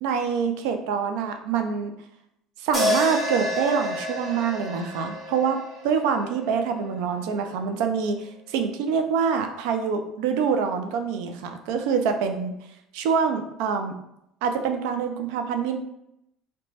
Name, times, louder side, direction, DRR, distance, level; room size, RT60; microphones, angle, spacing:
voice 1, 0.0-1.9 2.6-5.6 5.8-12.5 12.9-14.0 14.4-15.8, right 6 dB, 75° right, 6 dB, 0.3 m, -25 dB
sound 1, 2.7-7.0, left 1 dB, 40° right, 1.3 m, -29 dB
2.9 x 2.1 x 2.8 m, 0.79 s
hypercardioid pair, 75°, 0 cm